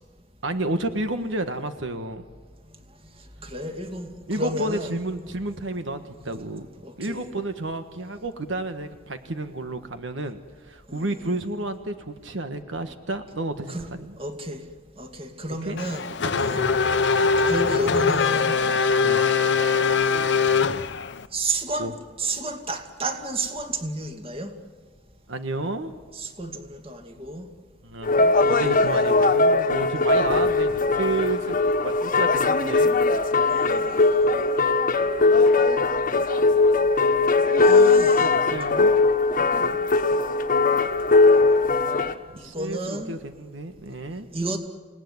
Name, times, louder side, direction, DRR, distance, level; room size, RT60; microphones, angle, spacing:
voice 1, 0.4-2.2 4.3-6.7 7.0-14.2 15.6-15.8 16.2-16.8 19.0-19.3 20.5-20.7 21.8-21.9 25.3-25.9 27.8-31.5 31.8-33.0 34.1-34.2 34.6-34.7 37.7-39.0 42.3-44.3, right 2 dB, 80° right, 8 dB, 1.5 m, -31 dB
voice 2, 3.4-4.9 6.1-6.2 6.8-7.3 10.9-11.0 13.7-13.9 14.2-14.6 15.0-16.0 16.4-16.6 17.5-18.6 21.3-21.9 22.2-24.5 26.1-27.5 33.8-33.9 37.6-38.3 42.4-43.1 44.3-44.6, right 2 dB, 30° right, 5 dB, 2.4 m, -31 dB
Race car auto racing / Accelerating revving vroom, 15.8-21.3, left 5 dB, 65° left, 0.9 m, -22 dB
sound 1, 28.0-42.1, left 3 dB, 45° left, 1.4 m, -20 dB
28.5 x 18.0 x 9.7 m, 1.5 s
head